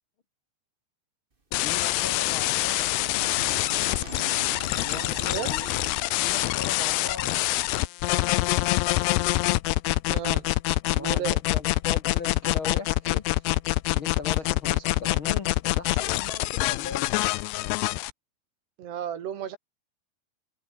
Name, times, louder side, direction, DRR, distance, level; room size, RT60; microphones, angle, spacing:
sound 1, 1.5-18.1, left 19 dB, 80° left, 2.7 m, -25 dB
voice 1, 1.5-2.9 4.7-5.7 6.2-7.4 10.8-13.5 13.9-17.1, left 5 dB, 55° left, 1.4 m, -39 dB
sound 2, 1.8-7.6, right 3 dB, 30° right, 0.9 m, -43 dB
voice 2, 3.9-4.3 5.3-5.6 10.1-10.5 11.0-11.4 18.8-19.6, right 9 dB, 70° right, 4.8 m, -34 dB
omnidirectional pair, 5.0 m